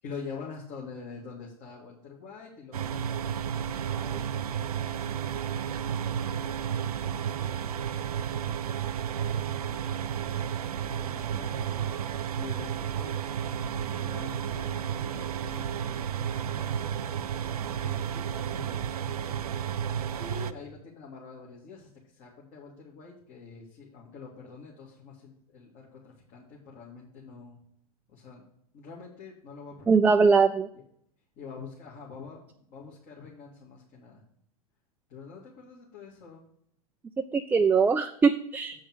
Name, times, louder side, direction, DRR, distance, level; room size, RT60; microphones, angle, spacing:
voice 1, 0.0-7.6 10.9-11.9 12.4-19.4 20.2-27.6 28.1-28.4 28.7-30.1 31.4-34.2 35.1-36.4, left 5 dB, 45° left, -4 dB, 2.4 m, -46 dB
sound 1, 2.7-20.5, right 9 dB, 80° right, 0.5 m, -32 dB
voice 2, 29.9-30.7 37.3-38.8, right 5 dB, 10° right, 6 dB, 0.3 m, -21 dB
8.0 x 5.1 x 6.2 m, 0.68 s
hypercardioid pair, 100°, 19 cm